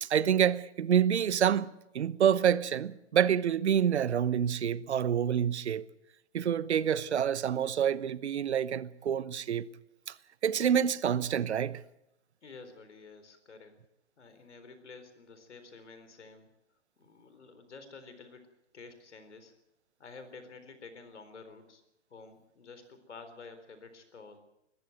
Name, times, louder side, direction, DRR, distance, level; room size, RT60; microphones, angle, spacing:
voice 1, 0.0-1.7 1.9-5.9 6.3-9.7 10.1-10.2 10.4-11.8, right 9 dB, 70° right, 1.0 m, -27 dB
voice 2, 12.4-13.8 14.2-16.5 17.0-19.5 20.0-21.8 22.1-24.4, left 4 dB, 75° left, 4.2 m, -50 dB
20.5 x 14.5 x 9.3 m
hypercardioid pair, 135°, 35 cm